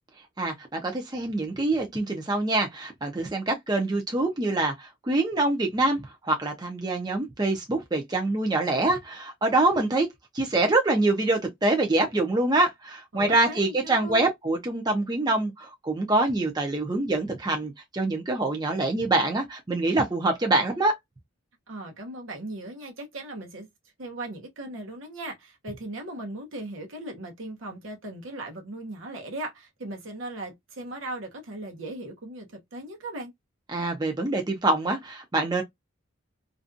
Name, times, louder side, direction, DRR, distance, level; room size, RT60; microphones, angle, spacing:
voice 1, 0.4-10.1 10.3-20.9 33.7-35.6, right 2 dB, 20° right, 0.5 m, -25 dB
voice 2, 13.1-14.3 21.7-23.7 24.0-33.3, right 1 dB, 75° right, 0.8 m, -38 dB
2.5 x 2.3 x 2.4 m
head